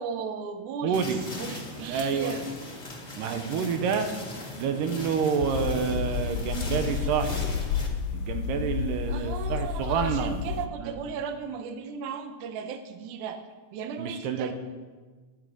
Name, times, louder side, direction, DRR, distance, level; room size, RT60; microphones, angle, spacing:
voice 1, 0.0-2.5 9.1-13.4 13.7-14.5, right 6 dB, 75° right, 7 dB, 2.1 m, -36 dB
voice 2, 0.8-1.2 1.8-2.3 3.2-4.1 4.6-7.4 8.1-10.4 10.8-11.0 14.0-14.5, right 6 dB, 90° right, 6 dB, 2.5 m, -28 dB
sound 1, 0.9-7.9, left 2 dB, 40° left, 0.6 m, -39 dB
sound 2, 5.4-10.7, left 8 dB, 85° left, 1.5 m, -31 dB
21.0 x 7.1 x 3.8 m, 1.4 s
omnidirectional pair, 3.8 m